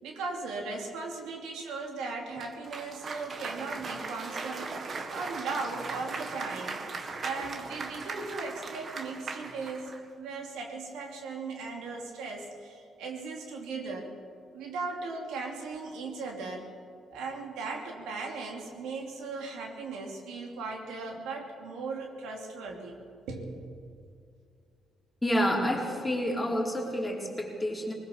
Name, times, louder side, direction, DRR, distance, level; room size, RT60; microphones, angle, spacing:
voice 1, 0.0-6.8 7.2-14.1 14.5-16.7 17.1-23.0 23.3-23.7, right 3 dB, 90° right, 1 dB, 2.9 m, -38 dB
Cheering / Applause, 2.4-10.0, right 4 dB, 45° right, 1.7 m, -38 dB
voice 2, 25.2-27.9, equal, 10° left, -3 dB, 4.5 m, -29 dB
20.0 x 19.5 x 7.1 m, 2.3 s
cardioid pair, 90°, 0 cm